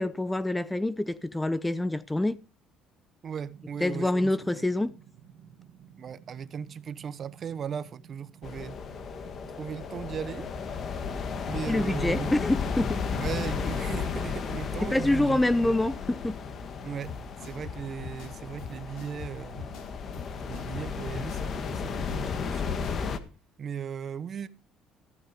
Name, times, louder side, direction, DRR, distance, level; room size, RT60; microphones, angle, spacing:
voice 1, 0.0-2.4 3.8-4.9 11.7-13.0 14.8-16.4, left 1 dB, 10° left, 0.6 m, -26 dB
voice 2, 3.2-4.6 6.0-8.8 9.6-10.5 11.5-12.4 13.1-15.8 16.8-17.1 17.4-19.7 20.5-22.8 23.6-24.5, right 7 dB, 40° right, 1.0 m, -37 dB
sound 1, 3.5-23.1, right 8 dB, 65° right, 2.4 m, -55 dB
sound 2, 8.4-23.2, left 5 dB, 45° left, 1.6 m, -34 dB
sound 3, 17.0-23.0, left 5 dB, 75° left, 3.4 m, -43 dB
14.5 x 8.9 x 5.2 m
cardioid pair, 130°, 0 cm